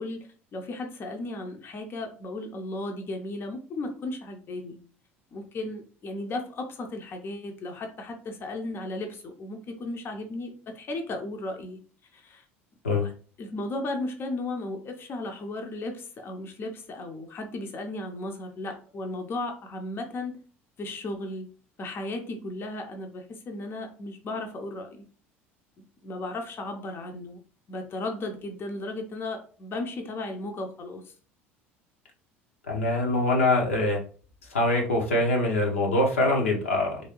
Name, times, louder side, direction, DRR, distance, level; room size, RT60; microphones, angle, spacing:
voice 1, 0.0-4.8 5.3-11.8 12.1-12.4 13.0-13.1 13.4-20.4 20.8-21.5 21.8-25.0 25.8-27.4 27.7-31.1, left 2 dB, 35° left, 3 dB, 0.7 m, -35 dB
voice 2, 32.7-34.0 34.5-37.0, left 2 dB, 80° left, 0 dB, 0.8 m, -24 dB
3.1 x 2.6 x 2.9 m, 0.40 s
figure-of-eight pair, 65°, 7 cm